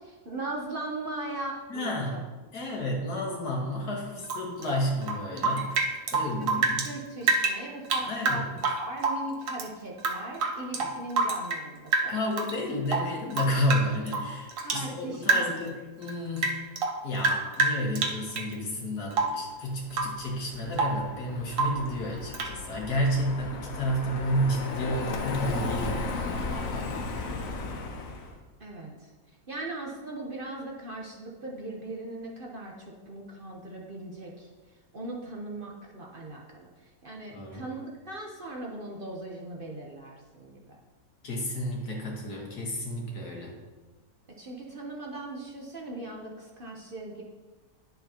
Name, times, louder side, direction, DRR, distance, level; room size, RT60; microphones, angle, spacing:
voice 1, 0.0-2.2 6.4-6.5 6.8-12.2 14.6-15.5 28.6-29.1 29.5-34.5 34.9-40.8 44.4-47.2, right 2 dB, 40° right, -2 dB, 1.0 m, -39 dB
voice 2, 1.7-2.2 2.5-6.9 8.0-8.5 10.7-10.9 12.1-16.5 17.0-26.9 37.3-37.6 41.2-43.6, equal, 80° left, -1 dB, 2.1 m, -31 dB
Rain / Drip, 4.2-6.9 7.2-9.7 10.0-11.7 11.9-12.6 12.9-14.9 15.2-15.7 16.0-18.5 19.1-19.5 19.9-20.2 20.5-21.1 21.5-21.9 22.3-22.6, right 3 dB, 65° right, 1.2 m, -28 dB
Car passing by, 19.8-28.4, left 3 dB, 60° left, 1.2 m, -35 dB
11.0 x 6.8 x 2.9 m, 1.3 s
omnidirectional pair, 1.7 m